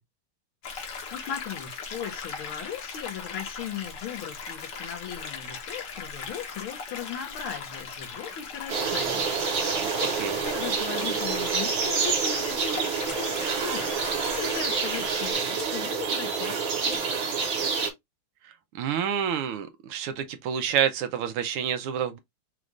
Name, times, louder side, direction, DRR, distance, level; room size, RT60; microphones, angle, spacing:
sound 1, 0.6-15.3, left 5 dB, 60° left, 1.6 m, -39 dB
voice 1, 1.1-9.6 10.0-17.2, left 8 dB, 75° left, 2.0 m, -38 dB
sound 2, 8.7-17.9, right 5 dB, 70° right, 2.0 m, -28 dB
sound 3, 13.0-13.2 14.2-14.4 15.5-15.7 16.8-17.2, left 1 dB, 20° left, 0.8 m, -45 dB
voice 2, 18.4-22.2, right 9 dB, 85° right, 1.6 m, -28 dB
5.1 x 2.5 x 3.1 m
omnidirectional pair, 2.4 m